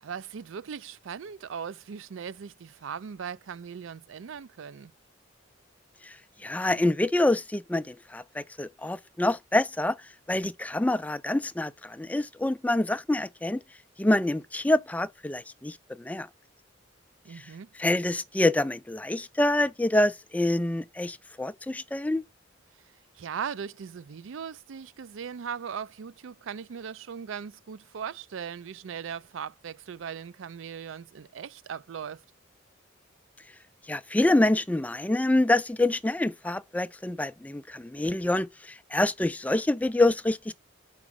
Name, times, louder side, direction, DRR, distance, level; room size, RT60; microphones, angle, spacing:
voice 1, 0.0-4.9 17.2-17.7 23.2-32.2, right 7 dB, 80° right, 0.4 m, -39 dB
voice 2, 6.4-10.0 10.3-13.6 14.0-16.3 17.8-22.2 33.9-40.5, left 1 dB, 10° left, 0.3 m, -26 dB
6.0 x 4.9 x 3.6 m
head